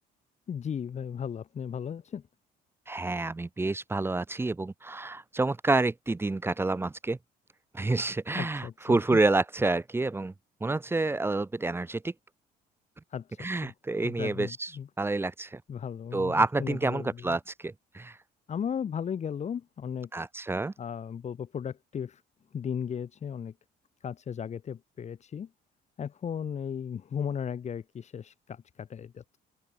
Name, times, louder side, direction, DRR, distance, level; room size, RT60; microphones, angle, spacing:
voice 1, 0.5-2.2 8.3-9.2 13.1-13.7 14.0-14.9 15.7-17.4 18.5-20.1 20.8-22.2 22.5-23.5 24.0-25.5 26.0-29.4, left 8 dB, 40° left, 3.6 m, -36 dB
voice 2, 2.9-7.2 7.7-10.3 10.6-12.1 13.4-14.7 15.0-15.6 16.1-18.2 20.1-20.7, right 2 dB, 15° right, 1.1 m, -28 dB
open air
cardioid pair, 110°, 17 cm